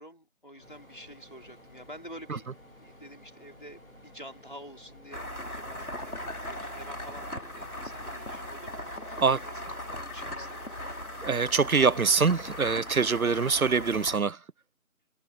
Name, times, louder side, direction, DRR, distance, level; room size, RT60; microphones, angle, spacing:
voice 1, 0.0-2.5 2.8-10.8, equal, 35° left, 5.2 m, -48 dB
sound 1, 0.6-8.1, left 1 dB, 70° left, 3.4 m, -55 dB
sound 2, 0.6-13.9, left 1 dB, 35° right, 1.4 m, -53 dB
sound 3, 5.1-14.2, left 1 dB, 85° left, 4.6 m, -39 dB
voice 2, 11.2-14.4, right 5 dB, 75° right, 0.7 m, -24 dB
figure-of-eight pair, 180°, 43 cm